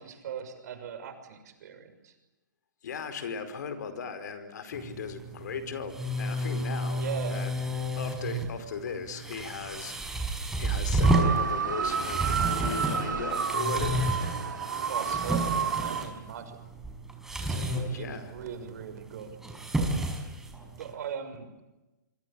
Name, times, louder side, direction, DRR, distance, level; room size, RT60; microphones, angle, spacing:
voice 1, 0.0-2.1 7.0-7.5 14.9-16.7 17.3-19.4 20.8-21.5, right 7 dB, 60° right, 8 dB, 6.4 m, -40 dB
voice 2, 2.8-7.5 8.0-14.0 17.9-18.4, left 6 dB, 65° left, 10 dB, 4.9 m, -38 dB
sound 1, 4.7-20.9, right 1 dB, 5° right, 5.2 m, -31 dB
sound 2, 11.0-16.0, right 6 dB, 75° right, 3.9 m, -30 dB
26.5 x 25.5 x 8.7 m, 1.0 s
hypercardioid pair, 130°, 10 cm